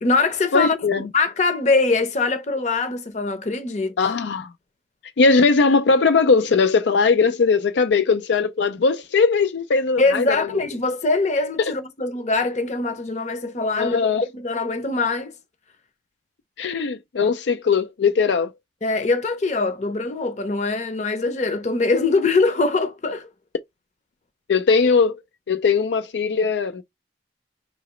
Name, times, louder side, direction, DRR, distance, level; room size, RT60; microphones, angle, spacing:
voice 1, 0.0-0.9 1.1-4.1 10.0-15.3 18.8-23.3, left 3 dB, 40° left, 0.7 m, -22 dB
voice 2, 0.5-1.1 4.0-4.5 5.2-10.2 13.8-14.2 16.6-18.5 24.5-25.2 25.5-26.8, left 4 dB, 80° left, 0.4 m, -19 dB
4.8 x 2.9 x 3.0 m
head